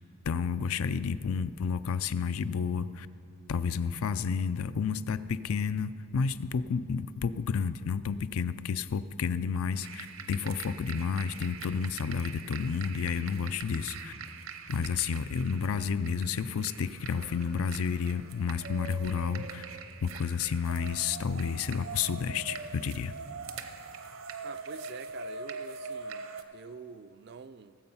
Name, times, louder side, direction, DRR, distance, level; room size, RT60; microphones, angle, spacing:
voice 1, 0.3-3.1 3.5-14.1 14.7-19.6 20.0-23.1, left 6 dB, 75° left, 0.4 m, -31 dB
sound 1, 9.8-26.4, right 5 dB, 70° right, 0.8 m, -43 dB
voice 2, 24.4-27.8, right 5 dB, 50° right, 0.3 m, -46 dB
17.5 x 7.8 x 5.5 m
head